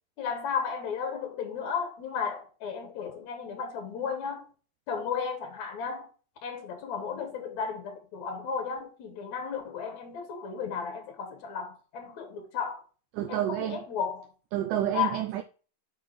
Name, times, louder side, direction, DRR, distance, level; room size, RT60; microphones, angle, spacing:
voice 1, 0.2-4.4 4.9-6.1 6.4-12.8 13.3-14.3 14.9-15.2, left 6 dB, 60° left, 2.1 m, -34 dB
voice 2, 13.1-13.8 14.5-15.4, right 12 dB, 90° right, 1.8 m, -29 dB
7.8 x 6.4 x 3.3 m
omnidirectional pair, 4.6 m